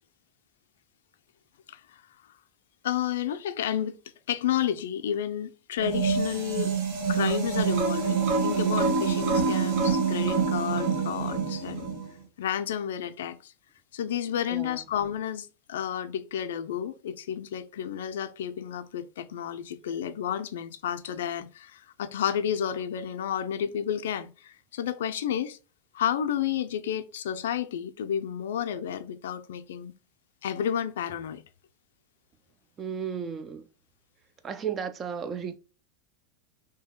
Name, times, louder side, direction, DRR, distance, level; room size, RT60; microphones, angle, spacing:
voice 1, 2.8-4.0 4.3-6.7 7.1-11.9 12.4-13.5 13.9-25.6 25.9-29.9 30.4-31.4, left 9 dB, 85° left, 0.4 m, -31 dB
sound 1, 5.8-12.1, right 5 dB, 60° right, 1.2 m, -26 dB
voice 2, 14.5-14.9 32.8-33.7 34.4-35.6, right 7 dB, 25° right, 0.4 m, -34 dB
2.7 x 2.7 x 3.7 m
supercardioid pair, 130°, 0 cm